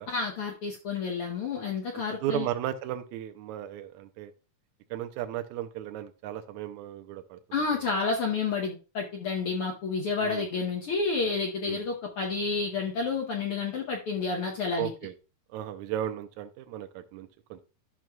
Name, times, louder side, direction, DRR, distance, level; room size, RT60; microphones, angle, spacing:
voice 1, 0.1-2.5 7.5-14.9, left 4 dB, 65° left, 0 dB, 1.4 m, -30 dB
voice 2, 1.9-4.3 4.9-7.4 10.2-10.5 11.7-11.8 14.8-15.1 15.5-17.6, right 12 dB, 80° right, 7 dB, 2.0 m, -35 dB
12.5 x 6.0 x 2.2 m, 0.32 s
omnidirectional pair, 3.5 m